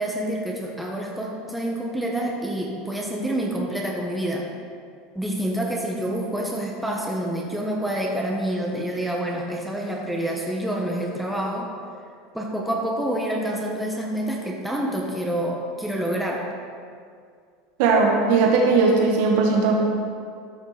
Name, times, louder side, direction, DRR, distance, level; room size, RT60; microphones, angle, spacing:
voice 1, 0.0-4.5 5.1-11.7 12.3-16.5, right 1 dB, ahead, -2 dB, 1.5 m, -27 dB
voice 2, 17.8-19.8, right 4 dB, 70° right, -1 dB, 1.8 m, -18 dB
13.0 x 6.3 x 5.2 m, 2.2 s
supercardioid pair, 100°, 0 cm